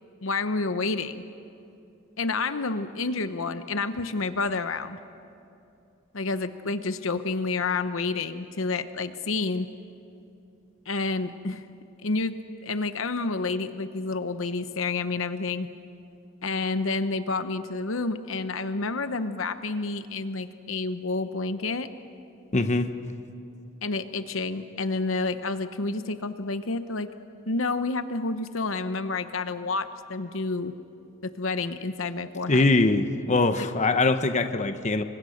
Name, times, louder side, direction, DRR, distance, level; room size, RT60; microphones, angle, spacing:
voice 1, 0.2-1.2 2.2-5.0 6.1-9.7 10.9-11.6 12.0-12.4 12.6-15.7 16.4-21.9 23.8-27.1 27.5-30.7 31.2-32.7 33.6-33.7, left 3 dB, 65° left, 10 dB, 0.9 m, -29 dB
voice 2, 22.5-22.9 32.5-35.0, left 2 dB, 35° left, 9 dB, 1.0 m, -22 dB
30.0 x 24.5 x 6.5 m, 2.7 s
head